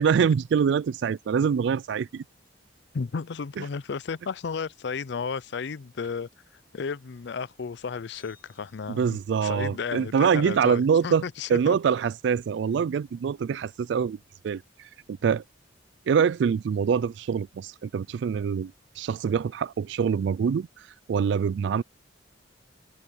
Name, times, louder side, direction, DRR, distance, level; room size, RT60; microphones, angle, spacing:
voice 1, 0.0-2.2 3.6-3.7 8.9-11.2 11.5-14.2 14.4-14.6 15.2-15.4 16.1-21.8, right 6 dB, 65° right, 0.3 m, -25 dB
voice 2, 2.9-6.3 6.7-11.8, left 5 dB, 65° left, 0.5 m, -33 dB
sound 1, 8.1-10.5, left 5 dB, 15° left, 1.5 m, -63 dB
head